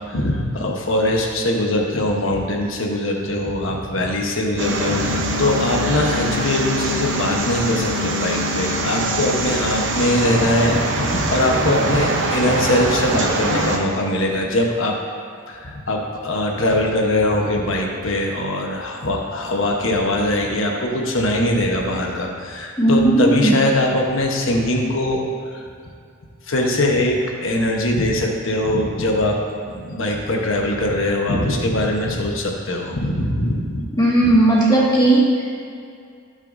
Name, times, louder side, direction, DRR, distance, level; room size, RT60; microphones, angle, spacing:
voice 1, 0.1-15.0 15.5-25.7 26.5-29.4 29.7-33.8 34.2-34.4, left 1 dB, 70° left, 0 dB, 1.2 m, -21 dB
sound 1, 4.6-13.8, right 1 dB, 60° right, 0.9 m, -23 dB
voice 2, 22.8-23.5 34.0-35.3, right 1 dB, 20° left, -6 dB, 2.0 m, -15 dB
15.5 x 6.4 x 2.7 m, 2.3 s
head